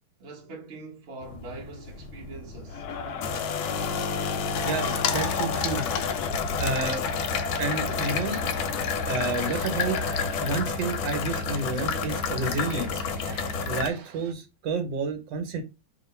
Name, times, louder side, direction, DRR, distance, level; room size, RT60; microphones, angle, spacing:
voice 1, 0.2-2.8, right 2 dB, 45° right, 1.0 m, -42 dB
sound 1, 1.2-13.9, left 5 dB, 85° left, 1.4 m, -30 dB
Crowd, 2.7-10.8, left 5 dB, 65° left, 1.0 m, -35 dB
voice 2, 4.6-5.8 6.6-7.0 7.6-8.4 9.0-10.0 10.4-13.0 13.7-15.6, right 3 dB, 70° right, 1.5 m, -30 dB
sound 2, 7.1-14.3, right 9 dB, 85° right, 1.4 m, -46 dB
3.1 x 2.7 x 4.2 m
omnidirectional pair, 2.2 m